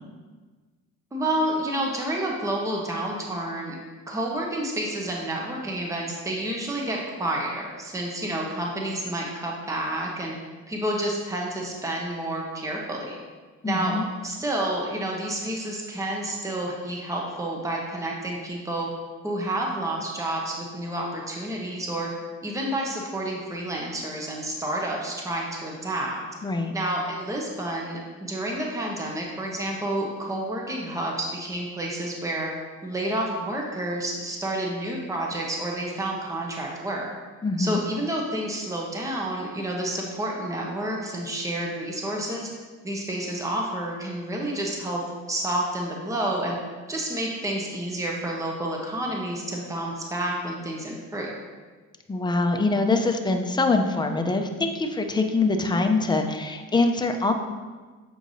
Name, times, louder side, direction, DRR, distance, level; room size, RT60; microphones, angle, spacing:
voice 1, 1.1-3.8 4.1-10.3 10.7-13.1 13.6-18.9 19.2-22.1 22.4-26.2 26.7-32.5 32.8-37.1 37.6-42.5 42.8-45.0 45.3-46.6 46.9-51.3, right 1 dB, 10° right, -1 dB, 0.9 m, -29 dB
voice 2, 13.6-14.0 26.4-26.7 37.4-37.8 52.1-57.3, left 3 dB, 15° left, 4 dB, 0.6 m, -24 dB
7.5 x 4.6 x 2.7 m, 1.4 s
cardioid pair, 90°, 30 cm